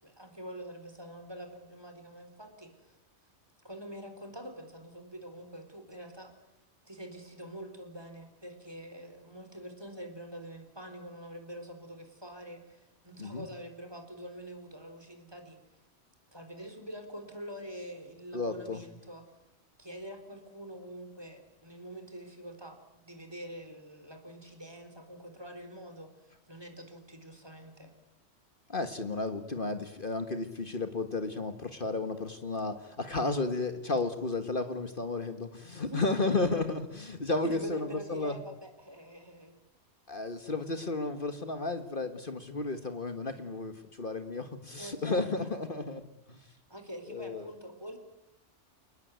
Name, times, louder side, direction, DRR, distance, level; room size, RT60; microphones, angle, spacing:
voice 1, 0.0-3.0 3.6-6.3 6.9-15.6 16.3-19.3 19.8-22.8 23.0-27.9 35.8-36.0 37.4-39.6 44.8-45.5 46.7-48.0, equal, 20° right, 6 dB, 4.3 m, -45 dB
voice 2, 18.3-18.8 28.7-38.4 40.1-46.0 46.3-46.4 47.1-47.5, left 3 dB, 45° left, 8 dB, 1.9 m, -33 dB
29.0 x 19.5 x 9.4 m, 0.91 s
omnidirectional pair, 1.2 m